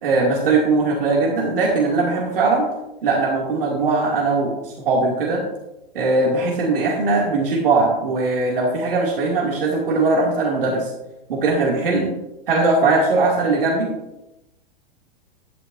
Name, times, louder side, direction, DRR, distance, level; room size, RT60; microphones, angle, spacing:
voice 1, 0.0-2.6 3.0-5.4 5.9-10.9 11.3-12.1 12.5-13.9, right 3 dB, 70° right, -3 dB, 2.7 m, -20 dB
11.0 x 11.0 x 2.7 m, 0.93 s
hypercardioid pair, 105°, 29 cm